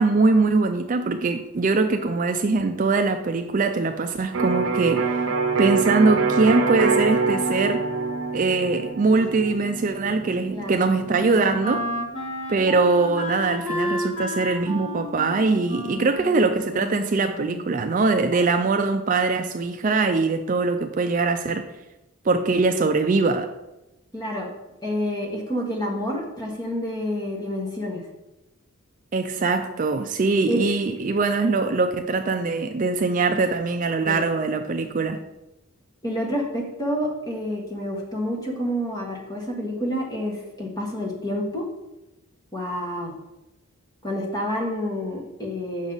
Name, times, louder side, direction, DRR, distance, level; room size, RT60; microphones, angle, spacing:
voice 1, 0.0-5.1 5.6-7.8 8.3-11.8 12.5-21.7 22.2-23.5 29.1-35.2, right 3 dB, 35° right, 6 dB, 0.3 m, -22 dB
Electric guitar, 4.3-12.1, right 4 dB, 65° right, 0.9 m, -26 dB
Wind instrument woodwind instrument, 10.0-17.8, equal, 75° left, 1.7 m, -32 dB
voice 2, 10.5-10.8 15.9-16.1 24.1-24.5 24.8-28.0 30.5-30.6 34.0-34.2 36.0-41.6 42.5-43.1 44.0-45.9, equal, 15° left, -1 dB, 1.4 m, -28 dB
7.3 x 6.1 x 4.0 m, 0.96 s
head